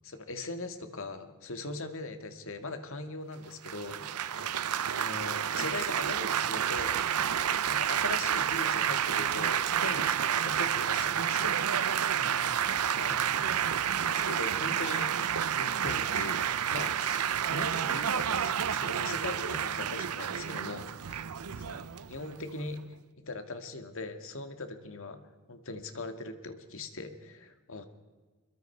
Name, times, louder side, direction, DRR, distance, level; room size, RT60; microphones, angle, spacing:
voice 1, 0.0-4.5 4.9-7.0 7.7-12.0 12.9-13.2 14.1-15.1 15.5-21.2 21.7-22.8 23.2-25.2 25.5-27.8, left 2 dB, 65° left, 7 dB, 2.1 m, -40 dB
Laughter / Applause / Chatter, 3.6-22.8, right 8 dB, 90° right, 0.7 m, -30 dB
voice 2, 7.4-7.8 12.2-12.6 13.1-14.3 21.4-21.9, left 1 dB, 35° left, -2 dB, 6.8 m, -51 dB
25.5 x 22.5 x 4.6 m, 1.4 s
head